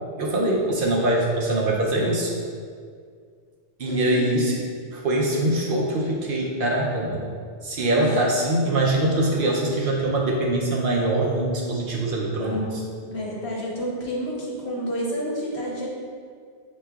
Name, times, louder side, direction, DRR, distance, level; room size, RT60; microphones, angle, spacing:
voice 1, 0.2-2.3 3.8-4.6 4.9-7.3 7.6-12.6, right 1 dB, 60° right, -2 dB, 0.7 m, -23 dB
voice 2, 3.9-4.4 8.0-8.1 12.4-15.9, equal, 70° left, -4 dB, 1.1 m, -29 dB
6.6 x 3.1 x 2.3 m, 2.1 s
omnidirectional pair, 1.2 m